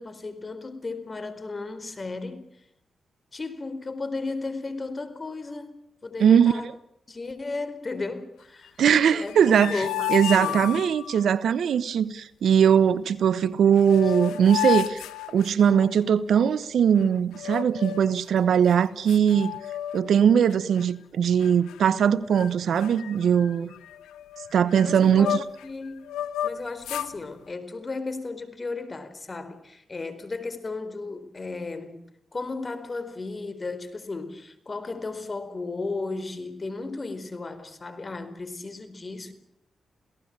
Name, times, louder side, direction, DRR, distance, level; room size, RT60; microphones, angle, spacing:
voice 1, 0.0-2.4 3.3-5.7 6.0-6.7 7.1-8.8 9.2-10.0 10.3-10.7 14.0-14.1 20.0-20.1 23.5-23.7 24.8-26.1 26.4-32.0 32.3-39.3, left 3 dB, 40° left, 12 dB, 4.4 m, -35 dB
voice 2, 6.2-6.5 8.8-9.7 10.1-15.0 15.3-19.6 19.9-23.7 24.5-25.4, right 8 dB, 75° right, 18 dB, 1.0 m, -20 dB
sound 1, 9.2-11.2 13.4-13.5 13.8-16.0 17.3-18.2 18.7-18.8 19.1-20.2 20.5-20.8 21.4-22.0 22.3-22.5 22.8-25.7 26.1-27.1, left 12 dB, 90° left, 1.1 m, -32 dB
28.0 x 18.0 x 8.9 m, 0.79 s
supercardioid pair, 45°, 0 cm